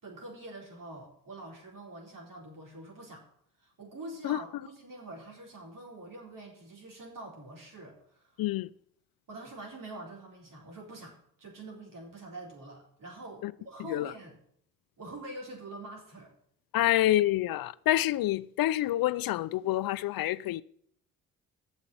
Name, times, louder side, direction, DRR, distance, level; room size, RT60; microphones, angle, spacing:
voice 1, 0.0-3.2 3.6-8.4 9.3-14.4 15.0-16.3 16.8-16.9, right 2 dB, 60° right, 4.1 m, -45 dB
voice 2, 8.4-8.7 13.4-13.5 13.9-14.1 16.7-20.6, left 14 dB, 75° left, 0.5 m, -27 dB
7.6 x 7.4 x 8.4 m
supercardioid pair, 55°, 36 cm